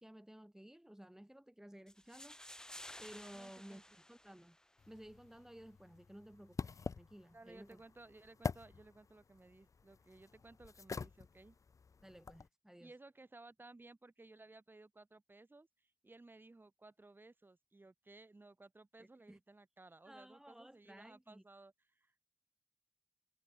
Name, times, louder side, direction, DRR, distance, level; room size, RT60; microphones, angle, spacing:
voice 1, 0.0-2.6 3.0-3.8 4.1-4.6 4.9-7.8 12.0-12.9 19.0-19.4 20.0-21.4, right 1 dB, 10° right, 2.4 m, -56 dB
sound 1, 1.9-4.9, left 1 dB, 10° left, 1.0 m, -54 dB
voice 2, 3.3-3.8 7.3-11.6 12.8-22.2, right 2 dB, 35° right, 5.8 m, -59 dB
sound 2, 4.8-12.5, left 5 dB, 60° left, 0.6 m, -47 dB
wide cardioid pair, 65°, 6 cm